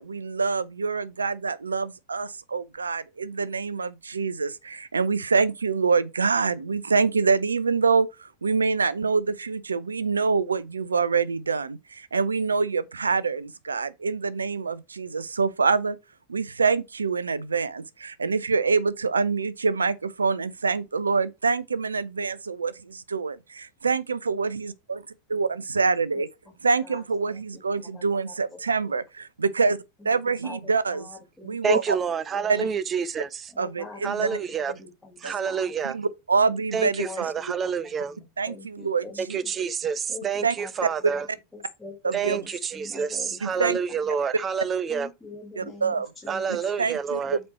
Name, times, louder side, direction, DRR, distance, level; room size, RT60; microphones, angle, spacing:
voice 1, 0.0-16.0 16.3-25.0 25.3-26.3 26.6-29.8 30.0-31.1 31.4-31.8 32.5-32.7 33.6-34.3 35.2-35.3 35.8-37.0 38.4-39.4 40.4-40.6 42.0-42.4 43.4-43.8 45.6-46.1 46.8-47.2, right 4 dB, 75° right, 0.5 m, -25 dB
voice 2, 30.4-31.6 31.9-32.0 32.4-32.5 33.5-35.7 37.0-39.5 40.1-40.3 40.6-40.7 41.0-41.2 41.5-43.7 44.9-46.7 47.3-47.4, left 3 dB, 10° left, 1.9 m, -44 dB
voice 3, 31.6-33.5 34.0-34.7 35.2-36.0 36.7-38.2 39.2-41.3 42.1-45.1 46.3-47.4, right 6 dB, 25° right, 0.6 m, -28 dB
7.4 x 4.4 x 4.2 m
figure-of-eight pair, 90°, 0 cm